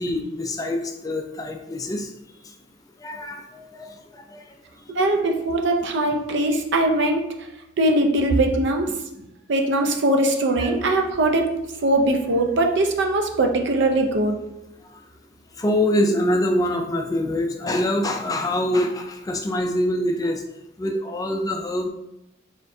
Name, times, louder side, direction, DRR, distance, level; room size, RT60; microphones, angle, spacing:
voice 1, 0.0-2.1 3.0-3.9 4.3-4.4 10.6-10.7 15.6-20.4 20.8-21.9, left 1 dB, 20° left, 3 dB, 0.3 m, -24 dB
voice 2, 4.9-7.2 7.8-8.9 9.5-11.5 11.8-14.4, right 2 dB, 60° right, 3 dB, 0.6 m, -21 dB
4.2 x 3.8 x 2.7 m, 0.89 s
head